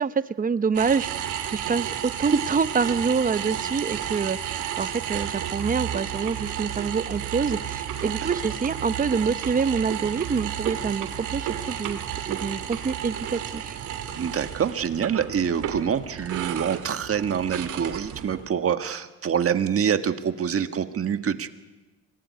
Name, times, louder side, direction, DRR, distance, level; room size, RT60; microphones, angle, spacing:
voice 1, 0.0-12.0 12.2-13.8, right 5 dB, 30° right, 13 dB, 0.9 m, -26 dB
sound 1, 0.7-18.5, right 10 dB, 85° right, 2.5 m, -32 dB
voice 2, 14.2-21.5, right 8 dB, 50° right, 9 dB, 1.6 m, -26 dB
24.5 x 19.5 x 9.6 m, 1.1 s
cardioid pair, 90°, 30 cm